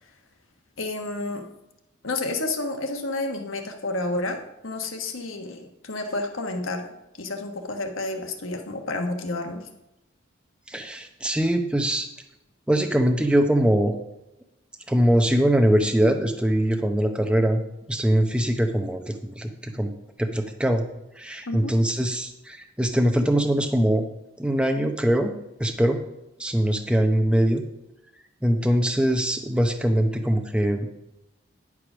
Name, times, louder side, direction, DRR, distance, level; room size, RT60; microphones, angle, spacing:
voice 1, 0.8-1.5 2.0-4.4 4.6-6.9 7.2-9.7 21.5-21.7, left 2 dB, 80° left, 4 dB, 1.3 m, -30 dB
voice 2, 10.7-12.1 12.7-13.9 14.9-17.6 17.9-19.9 20.2-20.8 21.2-24.0 24.4-25.3 25.6-26.0 26.4-27.6 28.4-31.0, right 1 dB, 5° right, 4 dB, 0.7 m, -22 dB
10.0 x 4.8 x 6.0 m, 0.94 s
head